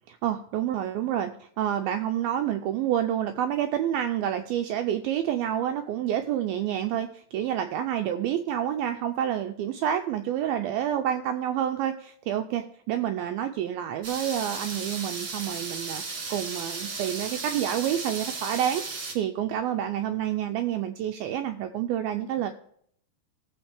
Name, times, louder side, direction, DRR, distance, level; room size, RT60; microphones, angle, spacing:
voice 1, 0.1-16.0 16.3-22.5, right 10 dB, 80° right, 7 dB, 2.2 m, -28 dB
sound 1, 14.0-19.1, right 4 dB, 45° right, 1.8 m, -35 dB
17.0 x 7.2 x 3.4 m, 0.66 s
omnidirectional pair, 4.8 m